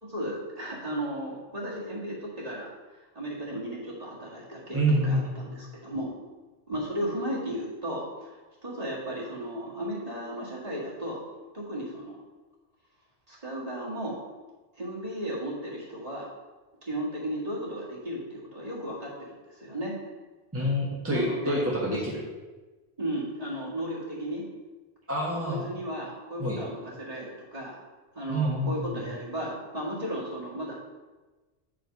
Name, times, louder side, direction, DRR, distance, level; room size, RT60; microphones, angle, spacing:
voice 1, 0.0-2.7 3.1-6.1 6.7-11.2 11.5-12.2 13.3-14.2 14.8-16.3 16.8-19.9 21.0-21.7 23.0-24.4 25.4-27.8 28.1-30.7, equal, 35° right, -5 dB, 2.2 m, -35 dB
voice 2, 4.7-5.3 20.5-22.2 25.1-25.7 26.4-26.6 28.3-29.0, equal, 15° right, -5 dB, 1.3 m, -27 dB
8.8 x 5.1 x 5.3 m, 1.2 s
omnidirectional pair, 1.1 m